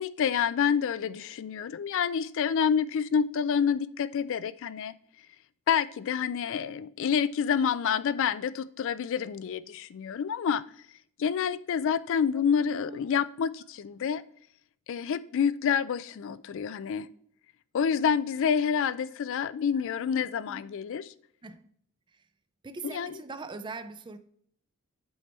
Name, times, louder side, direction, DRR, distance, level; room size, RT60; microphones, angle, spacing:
voice 1, 0.0-4.9 5.7-10.6 11.2-14.2 14.9-17.1 17.7-21.1 22.8-23.2, left 7 dB, 60° left, 0.3 m, -28 dB
voice 2, 12.3-13.0 19.7-20.6 21.4-21.6 22.6-24.2, right 3 dB, 20° right, 0.4 m, -43 dB
7.8 x 3.4 x 4.3 m
head